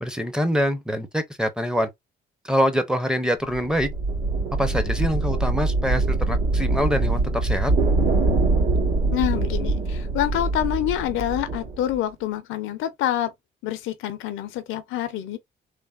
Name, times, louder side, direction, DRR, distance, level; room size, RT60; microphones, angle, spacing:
voice 1, 0.0-1.9 2.4-3.9 4.5-7.7, equal, 5° right, 0.5 m, -25 dB
sound 1, 3.5-11.9, right 2 dB, 70° right, 1.9 m, -23 dB
voice 2, 9.1-13.3 13.6-15.4, left 12 dB, 85° left, 0.5 m, -27 dB
3.2 x 2.1 x 2.3 m
cardioid pair, 90°, 20 cm